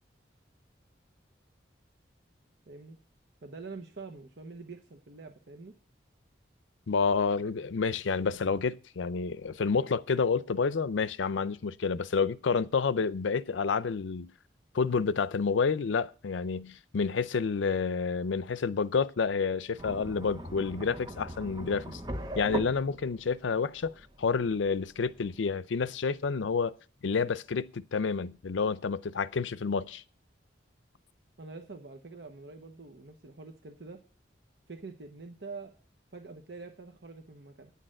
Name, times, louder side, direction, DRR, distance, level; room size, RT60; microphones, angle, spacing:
voice 1, 2.7-3.0 3.4-5.7 31.4-34.0 34.7-35.7 36.1-37.7, right 3 dB, 65° right, 1.0 m, -45 dB
voice 2, 6.9-14.3 14.7-22.0 22.4-26.8 27.0-30.0, left 5 dB, 90° left, 0.5 m, -29 dB
sound 1, 19.8-25.4, right 1 dB, 20° right, 0.9 m, -40 dB
9.7 x 6.6 x 7.6 m
head